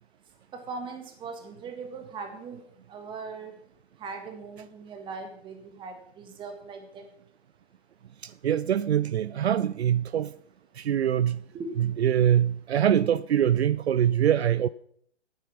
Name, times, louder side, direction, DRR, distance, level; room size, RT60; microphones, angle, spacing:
voice 1, 0.5-2.6 2.9-3.5 4.0-7.0 11.5-11.8, right 4 dB, 15° right, 1.5 m, -39 dB
voice 2, 8.2-10.3 10.8-11.4 11.8-14.7, right 10 dB, 70° right, 0.5 m, -24 dB
9.2 x 8.6 x 6.0 m
figure-of-eight pair, 130°, 33 cm